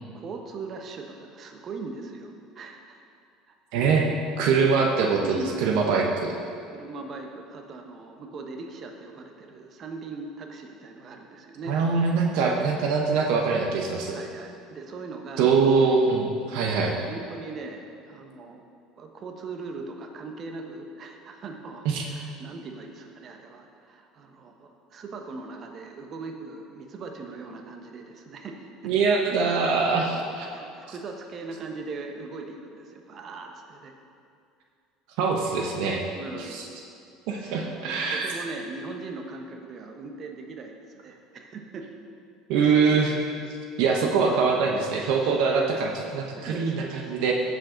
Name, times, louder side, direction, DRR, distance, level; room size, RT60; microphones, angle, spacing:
voice 1, 0.1-3.0 3.5-3.9 5.2-5.9 6.7-11.8 12.4-12.6 14.1-15.5 16.5-18.7 19.0-28.9 30.2-33.9 36.1-36.8 37.5-41.9 46.4-47.1, right 3 dB, 45° right, 4 dB, 1.0 m, -40 dB
voice 2, 3.7-4.1 4.4-6.4 11.7-14.2 15.4-17.0 21.8-22.0 28.8-30.5 35.2-36.0 36.5-36.6 37.3-38.4 42.5-43.2 43.8-47.3, right 5 dB, 70° right, 1 dB, 0.9 m, -23 dB
15.0 x 5.2 x 3.9 m, 2.4 s
hypercardioid pair, 80°, 0 cm